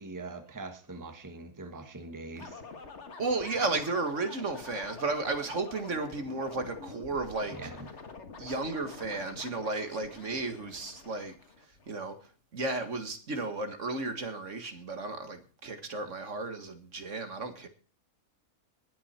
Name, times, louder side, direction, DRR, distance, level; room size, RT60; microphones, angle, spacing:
voice 1, 0.0-2.6 7.5-7.9, right 3 dB, 15° right, 1.4 m, -42 dB
sound 1, 2.4-11.9, left 4 dB, 50° left, 1.9 m, -47 dB
voice 2, 3.2-7.6 8.4-11.3 11.9-12.1 12.5-17.7, right 3 dB, 55° right, 1.9 m, -33 dB
19.5 x 8.6 x 4.3 m
omnidirectional pair, 1.5 m